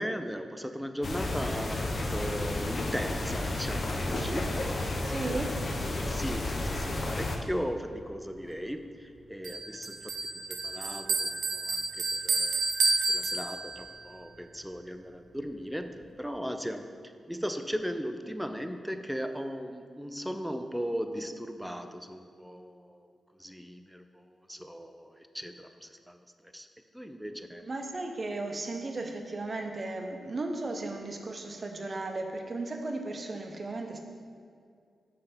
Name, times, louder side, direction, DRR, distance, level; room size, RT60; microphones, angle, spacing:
voice 1, 0.0-5.4 6.1-10.1 10.5-12.7 13.1-16.9 17.3-23.1 23.4-26.2 26.5-26.7 26.9-27.6, equal, ahead, 8 dB, 0.4 m, -37 dB
sound 1, 1.0-7.4, left 2 dB, 50° left, 0.7 m, -32 dB
voice 2, 5.1-5.5 27.6-34.0, right 2 dB, 45° right, 3 dB, 0.7 m, -35 dB
Bell, 9.4-14.0, right 3 dB, 80° right, 0.7 m, -30 dB
5.4 x 3.4 x 5.7 m, 2.2 s
cardioid pair, 65°, 0 cm